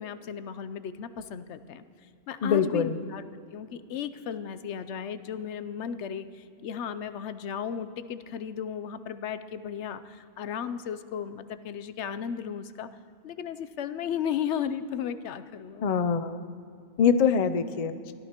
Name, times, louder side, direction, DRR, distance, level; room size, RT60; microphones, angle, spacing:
voice 1, 0.0-1.8 2.3-3.2 3.5-12.9 13.2-15.9, left 8 dB, 75° left, 12 dB, 0.9 m, -35 dB
voice 2, 2.4-3.0 15.8-16.4 17.0-18.0, left 6 dB, 50° left, 10 dB, 0.4 m, -24 dB
23.5 x 15.0 x 2.9 m, 2.2 s
omnidirectional pair, 1.2 m